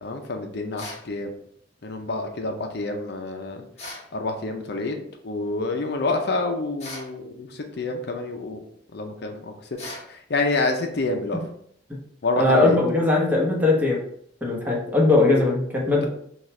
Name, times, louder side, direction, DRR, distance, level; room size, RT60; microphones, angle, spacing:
voice 1, 0.0-1.3 1.8-3.6 4.1-8.6 8.9-11.4 12.2-12.8, left 2 dB, 60° left, 4 dB, 0.6 m, -28 dB
sound 1, 0.8-1.1 3.8-4.1 6.8-7.1 9.8-10.1, left 2 dB, 35° left, 1.1 m, -37 dB
voice 2, 12.4-14.0 14.4-16.1, left 2 dB, 10° right, -3 dB, 1.0 m, -20 dB
6.2 x 2.4 x 3.1 m, 0.68 s
head